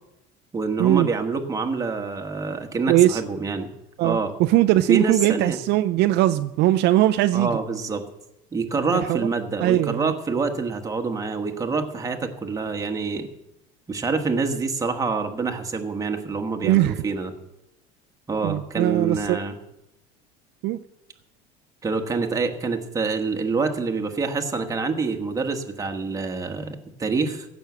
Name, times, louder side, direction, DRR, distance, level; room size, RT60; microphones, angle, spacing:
voice 1, 0.5-3.7 4.0-4.3 4.9-5.6 7.3-8.0 8.5-13.3 13.9-17.3 18.3-19.5 21.8-27.5, right 4 dB, 15° right, 4 dB, 1.4 m, -26 dB
voice 2, 2.9-3.2 4.0-7.6 8.9-9.3 9.6-10.1 16.6-17.0 18.4-19.4 20.6-20.8, right 15 dB, 60° right, 9 dB, 0.5 m, -20 dB
16.0 x 6.3 x 8.2 m, 0.91 s
cardioid pair, 140°, 19 cm